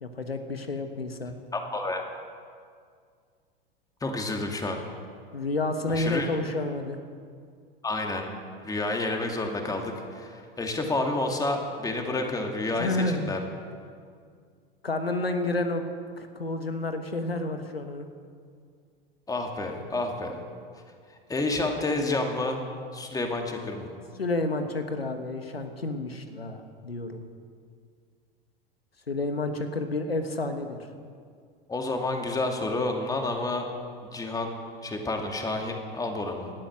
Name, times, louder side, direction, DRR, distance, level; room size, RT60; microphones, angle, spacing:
voice 1, 0.0-1.4 5.3-7.0 12.8-13.4 14.8-15.8 16.2-18.1 24.2-27.2 29.1-30.9, left 2 dB, 90° left, 7 dB, 1.3 m, -30 dB
voice 2, 1.5-2.0 4.0-4.8 5.9-6.3 7.8-8.3 8.6-13.4 19.3-20.4 21.3-22.6 22.9-23.9 31.7-33.6 34.1-34.5 34.8-36.5, left 2 dB, 10° left, 3 dB, 2.3 m, -29 dB
18.5 x 12.5 x 6.3 m, 2.2 s
figure-of-eight pair, 90°, 29 cm